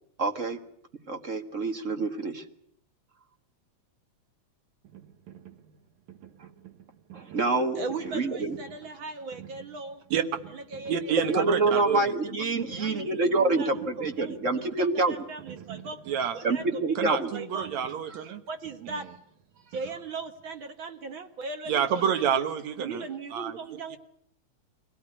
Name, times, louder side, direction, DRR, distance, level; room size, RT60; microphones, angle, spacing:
voice 1, 0.2-0.6 1.1-2.5 6.4-6.5 7.1-8.6 11.3-15.2 16.4-17.3, right 3 dB, 35° right, 6 dB, 1.3 m, -27 dB
sound 1, 4.8-20.6, right 9 dB, 85° right, 2.7 m, -50 dB
voice 2, 7.8-10.1 10.5-11.3 11.7-12.1 12.8-14.4 14.8-16.0 16.3-17.0 17.3-17.7 18.1-18.2 18.5-19.2 19.6-22.0 22.8-24.0, right 4 dB, 50° right, 7 dB, 1.7 m, -38 dB
voice 3, 10.9-12.0 16.1-16.4 17.0-18.4 21.7-23.1 23.3-23.6, right 8 dB, 70° right, 10 dB, 2.4 m, -28 dB
24.0 x 17.0 x 9.8 m, 0.68 s
omnidirectional pair, 3.4 m